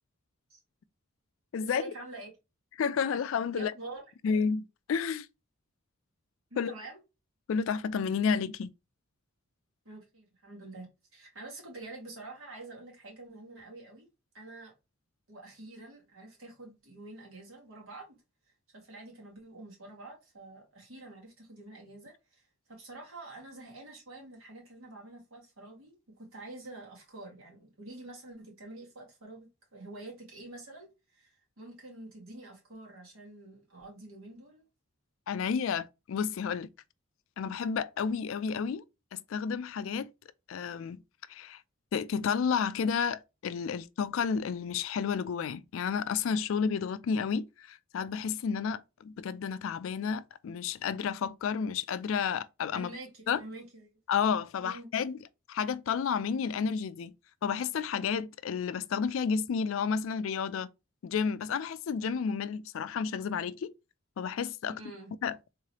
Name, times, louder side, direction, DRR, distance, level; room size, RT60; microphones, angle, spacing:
voice 1, 1.6-2.3 3.5-4.0 6.5-7.0 9.9-10.9 11.1-14.1 14.3-14.7 15.3-18.2 18.7-34.6 52.7-54.0 54.6-54.9 64.7-65.1, right 2 dB, 80° right, 1.9 m, -47 dB
voice 2, 2.8-3.7 4.2-5.3 6.6-6.7 7.5-8.7 35.3-36.7 37.4-38.8 39.1-40.1 40.5-41.0 41.3-41.6 41.9-52.9 53.3-53.4 54.1-55.2 55.5-57.1 57.4-60.7 61.0-63.7 64.2-64.8 65.2-65.4, left 6 dB, 70° left, 0.3 m, -31 dB
3.7 x 3.2 x 2.8 m
head